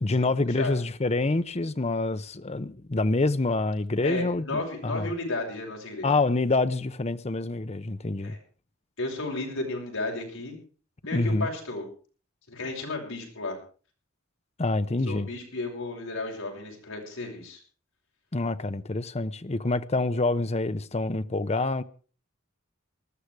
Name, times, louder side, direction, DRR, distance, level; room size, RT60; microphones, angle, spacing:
voice 1, 0.0-5.1 6.0-8.4 11.1-11.5 14.6-15.3 18.3-21.8, left 2 dB, 30° left, 0.7 m, -27 dB
voice 2, 4.0-6.1 8.2-8.4 9.0-10.5 11.0-11.8 12.5-13.6 15.1-17.6, left 2 dB, 70° left, 6.4 m, -33 dB
20.0 x 13.5 x 4.7 m
head